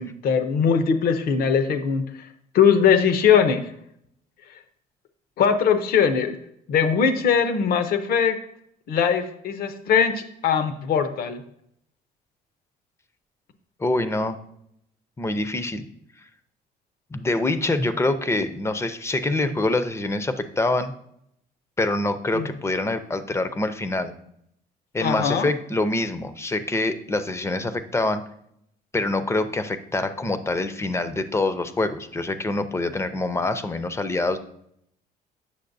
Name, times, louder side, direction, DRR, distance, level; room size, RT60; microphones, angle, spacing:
voice 1, 0.0-2.3 2.5-3.7 5.4-6.4 6.7-8.4 8.9-11.4 22.3-22.5 25.0-25.5, left 7 dB, 60° left, 9 dB, 0.7 m, -21 dB
voice 2, 13.8-14.4 15.2-15.8 17.1-20.9 21.8-24.1 24.9-28.2 28.9-34.4, left 2 dB, 15° left, 11 dB, 0.5 m, -25 dB
8.4 x 6.3 x 2.6 m, 0.73 s
cardioid pair, 110°, 17 cm